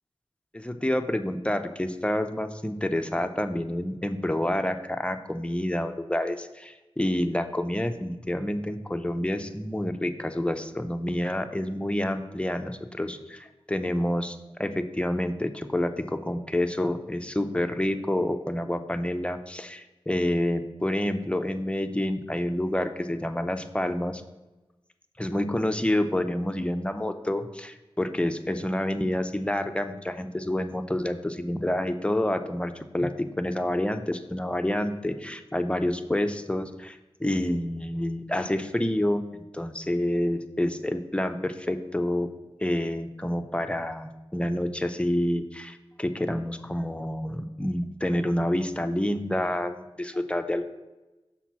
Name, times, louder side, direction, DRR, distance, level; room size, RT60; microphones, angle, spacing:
voice 1, 0.5-24.2 25.2-33.1 33.4-42.3 42.6-50.7, left 1 dB, 10° left, 8 dB, 0.6 m, -28 dB
5.8 x 4.1 x 5.9 m, 1.1 s
cardioid pair, 40°, 10 cm